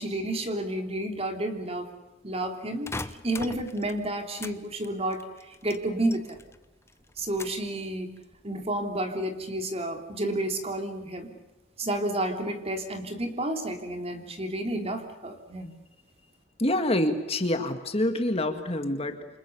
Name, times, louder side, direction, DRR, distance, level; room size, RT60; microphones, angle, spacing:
voice 1, 0.0-1.9 2.2-5.3 5.6-6.4 7.2-11.3 11.8-15.7, right 1 dB, 30° right, 4 dB, 3.4 m, -31 dB
sound 1, 2.9-4.6 4.8-6.6 6.9-7.7 8.2-8.6, left 2 dB, 15° left, 0.8 m, -40 dB
voice 2, 16.6-19.3, left 1 dB, 30° left, 7 dB, 2.1 m, -26 dB
29.0 x 26.5 x 7.1 m, 1.0 s
head